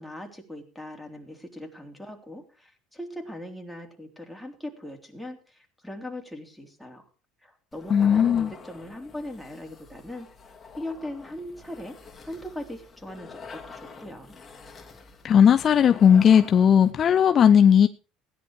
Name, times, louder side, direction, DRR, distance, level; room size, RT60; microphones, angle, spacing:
voice 1, 0.0-7.1 7.4-10.3 10.8-11.9 12.2-14.4, left 1 dB, ahead, 1 dB, 3.5 m, -39 dB
sound 1, 7.7-17.0, left 4 dB, 25° left, 2.6 m, -46 dB
voice 2, 7.9-8.5 15.2-17.9, left 8 dB, 40° left, 9 dB, 0.7 m, -17 dB
16.5 x 10.5 x 4.7 m, 0.36 s
supercardioid pair, 100°, 0 cm